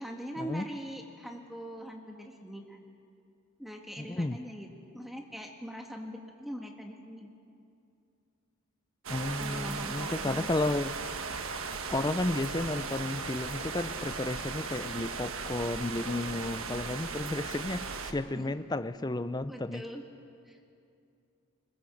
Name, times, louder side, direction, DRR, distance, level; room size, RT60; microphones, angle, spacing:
voice 1, 0.0-2.8 3.6-7.3 9.4-10.5 18.3-18.4 19.5-20.0 20.4-20.6, equal, ahead, 2 dB, 1.5 m, -42 dB
voice 2, 4.0-4.4 9.1-10.9 11.9-19.8, left 2 dB, 20° left, 13 dB, 0.5 m, -32 dB
sound 1, 9.0-18.1, right 4 dB, 65° right, 1.4 m, -37 dB
22.5 x 21.0 x 7.2 m, 2.5 s
head